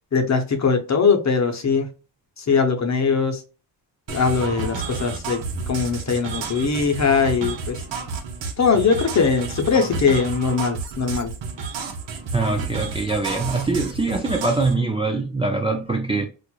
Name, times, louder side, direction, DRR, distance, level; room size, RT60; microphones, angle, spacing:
voice 1, 0.1-1.9 2.4-3.4 4.1-5.4 5.7-7.8 8.6-11.3, left 5 dB, 40° left, 0.8 m, -21 dB
sound 1, 4.1-14.7, right 4 dB, 70° right, 1.0 m, -31 dB
voice 2, 12.3-16.2, right 3 dB, 15° right, 0.4 m, -23 dB
4.4 x 2.5 x 2.2 m
cardioid pair, 100°, 45 cm